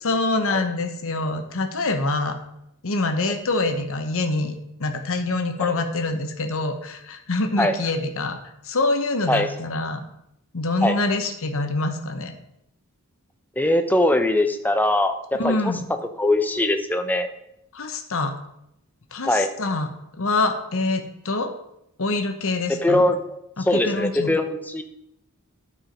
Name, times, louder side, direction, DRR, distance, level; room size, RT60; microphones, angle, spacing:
voice 1, 0.0-2.4 2.8-8.4 8.6-10.1 10.5-12.3 15.3-15.9 17.7-18.3 19.1-19.9 20.2-21.5 22.0-23.0 23.6-24.4, left 2 dB, 65° left, 6 dB, 1.1 m, -25 dB
voice 2, 13.6-15.6 16.2-17.3 19.3-19.5 22.7-23.2 23.6-24.8, left 1 dB, 10° left, 7 dB, 0.7 m, -21 dB
12.0 x 4.9 x 5.2 m, 0.79 s
head